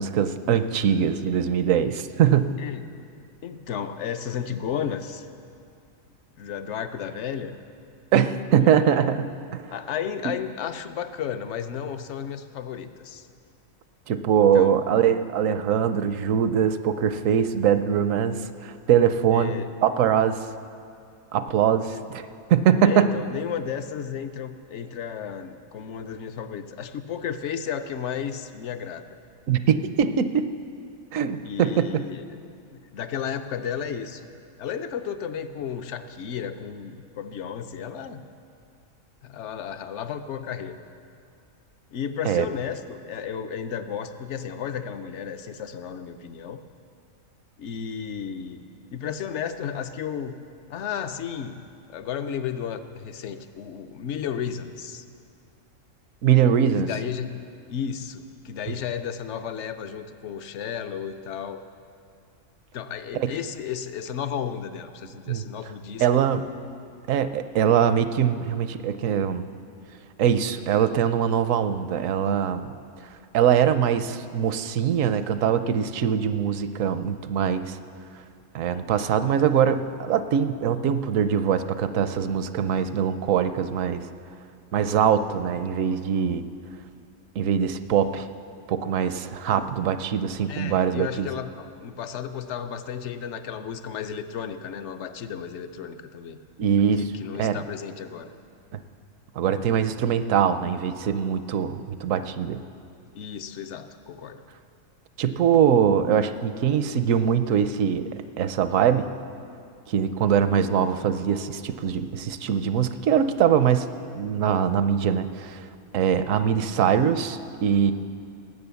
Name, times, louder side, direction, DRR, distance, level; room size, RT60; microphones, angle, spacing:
voice 1, 0.0-2.5 8.1-9.6 14.1-19.5 19.8-20.4 21.3-22.2 22.5-23.1 29.5-30.5 31.1-32.1 42.2-42.5 56.2-56.9 63.1-63.3 65.3-65.5 66.0-66.4 67.1-69.5 70.2-72.7 73.3-77.8 78.5-84.1 84.7-86.4 87.4-88.3 88.7-91.3 96.6-97.1 97.4-97.6 99.4-102.6 105.2-108.1 108.4-109.1 109.9-113.9 114.1-115.6 115.9-117.9, right 8 dB, 75° right, 11 dB, 1.0 m, -22 dB
voice 2, 3.4-5.3 6.4-7.6 8.6-9.1 9.7-13.3 14.5-14.8 19.3-19.8 21.9-22.1 22.8-29.2 31.4-32.4 32.7-34.3 34.6-38.3 39.2-40.8 41.9-46.6 47.6-48.6 48.9-50.4 50.7-51.6 51.9-55.0 56.8-57.4 57.7-61.6 62.7-66.3 90.5-96.4 97.0-98.3 103.1-104.4, left 8 dB, 65° left, 10 dB, 0.9 m, -33 dB
18.5 x 8.2 x 6.9 m, 2.4 s
omnidirectional pair, 1.4 m